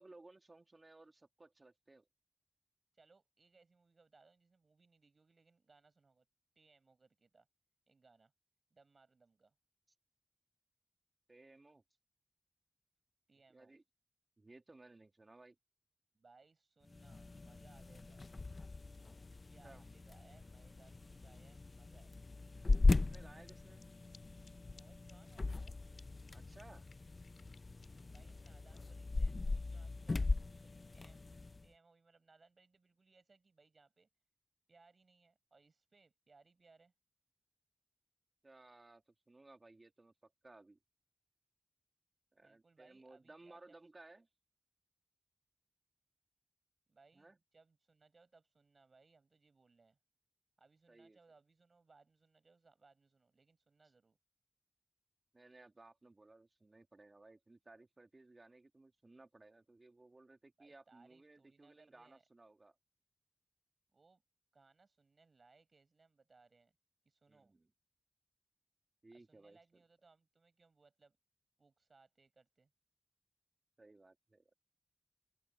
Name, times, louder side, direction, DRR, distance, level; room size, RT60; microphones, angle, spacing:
voice 1, 0.0-2.1 11.3-11.8 13.5-13.8 14.4-15.6 19.6-19.9 22.9-23.8 26.3-26.9 38.4-40.8 42.3-44.3 47.1-47.4 50.9-51.2 55.3-62.8 67.3-67.7 69.0-69.6 73.8-74.5, right 2 dB, 40° right, 2.4 m, -60 dB
voice 2, 2.9-6.2 6.5-7.5 7.9-8.3 8.7-9.5 13.3-13.7 16.1-18.3 19.5-22.1 24.7-26.0 27.8-30.3 30.6-31.3 31.6-34.1 34.7-36.9 42.4-43.8 46.9-50.0 50.6-54.2 60.6-62.2 63.9-64.2 64.5-66.7 67.0-67.6 69.1-71.2 71.6-72.7, right 4 dB, 60° right, 6.4 m, -68 dB
sound 1, 16.9-31.7, left 3 dB, 45° left, 0.6 m, -38 dB
sound 2, 22.7-22.8 23.1-23.2 23.5-23.6 23.8-23.9 24.1-24.2 24.4-24.5 24.8-24.9 25.1-25.7 26.0-26.1 26.3-26.4 26.6-28.8, left 5 dB, 80° left, 2.4 m, -62 dB
wide cardioid pair, 65°, 0 cm